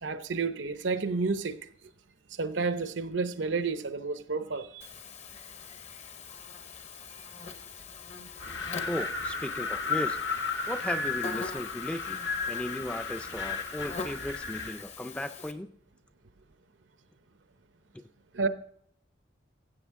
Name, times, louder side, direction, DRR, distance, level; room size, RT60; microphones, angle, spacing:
voice 1, 0.0-1.6 2.4-4.9 8.2-8.3 18.3-18.5, right 4 dB, 80° right, 11 dB, 0.7 m, -30 dB
Buzz, 4.8-15.5, left 5 dB, 35° left, 0.7 m, -43 dB
Wind, 8.4-14.8, left 4 dB, 75° left, 1.2 m, -34 dB
voice 2, 8.9-10.2 10.7-15.7 17.9-18.0, equal, 5° left, 8 dB, 0.4 m, -36 dB
15.0 x 8.0 x 3.6 m, 0.64 s
head